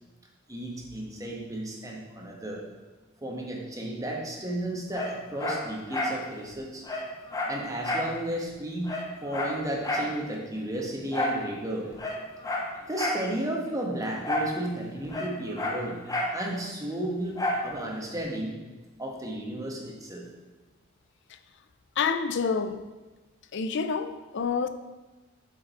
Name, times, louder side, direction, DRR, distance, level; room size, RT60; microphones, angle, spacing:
voice 1, 0.5-2.6 3.2-6.8 7.5-11.9 12.9-16.0 16.3-18.6 19.0-20.3, right 1 dB, 15° right, -1 dB, 1.2 m, -33 dB
Dog, 4.9-6.2 6.5-6.6 6.9-8.1 8.5-8.6 8.8-10.1 11.1-11.4 11.9-13.3 14.2-14.6 14.8-16.4 17.4-17.7 18.2-18.3, left 1 dB, 15° left, 0.8 m, -30 dB
voice 2, 22.0-22.8 23.5-24.7, left 5 dB, 60° left, 10 dB, 0.5 m, -28 dB
8.0 x 5.1 x 4.1 m, 1.2 s
head